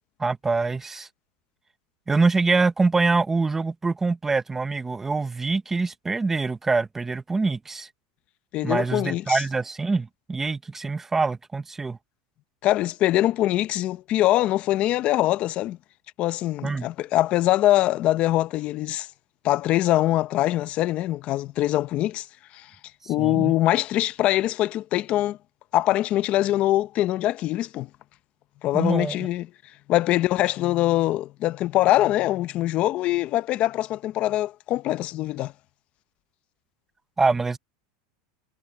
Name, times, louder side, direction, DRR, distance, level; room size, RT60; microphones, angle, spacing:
voice 1, 0.2-1.1 2.1-7.9 8.6-12.0 16.6-16.9 23.0-23.5 28.7-29.2 37.2-37.6, right 3 dB, 10° right, 0.7 m, -24 dB
voice 2, 8.5-9.4 12.6-15.8 16.2-19.1 19.4-22.3 22.5-22.7 23.1-25.4 25.7-27.9 28.6-29.5 29.9-35.5, left 15 dB, 35° left, 0.6 m, -23 dB
supercardioid pair, 165°, 4 cm